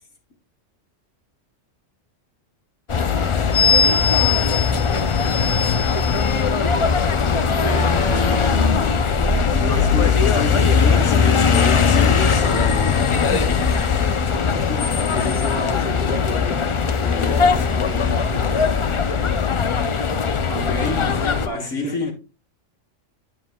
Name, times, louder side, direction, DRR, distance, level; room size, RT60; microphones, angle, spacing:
sound 1, 2.9-21.5, left 5 dB, 55° left, 0.3 m, -19 dB
voice 1, 3.0-4.1 4.6-5.7 12.9-13.8 14.5-19.3 21.1-22.1, left 1 dB, 10° right, 0.7 m, -34 dB
voice 2, 7.6-9.0 9.5-13.0 14.7-14.9 20.5-22.1, left 3 dB, 75° left, 2.0 m, -27 dB
9.6 x 7.2 x 2.2 m
omnidirectional pair, 1.3 m